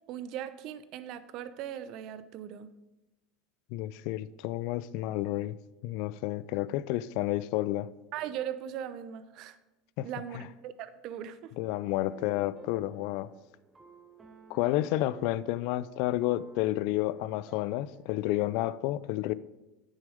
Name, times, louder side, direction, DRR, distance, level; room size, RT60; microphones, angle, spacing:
voice 1, 0.1-2.7 8.1-9.6 10.0-11.5, right 10 dB, 55° right, 0.7 m, -39 dB
voice 2, 3.7-5.6 5.8-7.9 10.0-10.1 10.3-10.4 11.6-13.3 14.5-19.3, left 15 dB, 65° left, 0.4 m, -30 dB
sound 1, 11.9-18.4, right 4 dB, 20° right, 1.1 m, -54 dB
9.3 x 6.5 x 5.1 m
hypercardioid pair, 90°, 0 cm